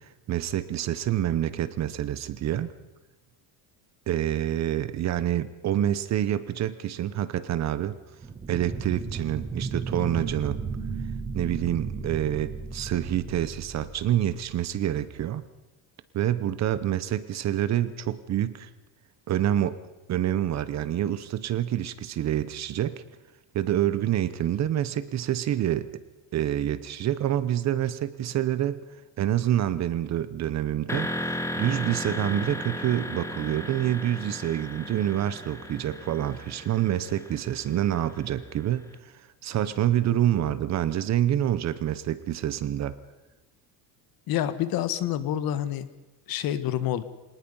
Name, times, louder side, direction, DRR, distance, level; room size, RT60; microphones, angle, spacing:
voice 1, 0.3-2.7 4.1-8.0 8.5-10.6 11.3-15.4 16.1-18.7 19.3-19.8 20.1-23.0 23.5-25.9 26.3-28.8 29.2-39.1 39.4-42.9, right 11 dB, 40° right, 14 dB, 0.9 m, -27 dB
sound 1, 8.2-14.7, right 4 dB, 15° right, 1.3 m, -34 dB
sound 2, 30.9-38.7, left 1 dB, 5° left, 1.1 m, -35 dB
voice 2, 44.3-45.9 46.3-47.0, left 11 dB, 55° left, 13 dB, 1.4 m, -27 dB
24.5 x 19.5 x 5.5 m, 1.1 s
cardioid pair, 170°, 43 cm